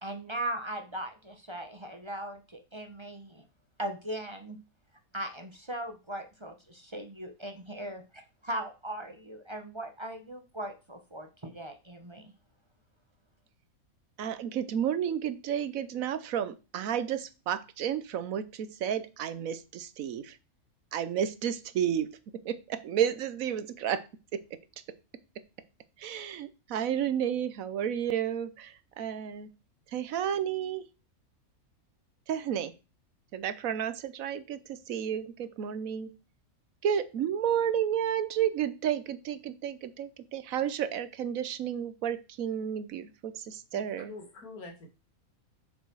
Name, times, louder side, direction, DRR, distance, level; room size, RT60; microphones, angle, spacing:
voice 1, 0.0-3.4 3.8-4.6 5.1-12.3, right 1 dB, 20° right, 5 dB, 0.9 m, -39 dB
voice 2, 14.2-20.4 20.9-24.0 24.3-24.4 26.0-29.5 29.9-30.9 32.3-32.7 33.3-36.1 36.8-44.1, right 9 dB, 70° right, 14 dB, 1.1 m, -32 dB
voice 3, 43.7-44.9, left 3 dB, 85° left, 4 dB, 2.3 m, -45 dB
6.8 x 6.6 x 4.6 m, 0.31 s
omnidirectional pair, 1.5 m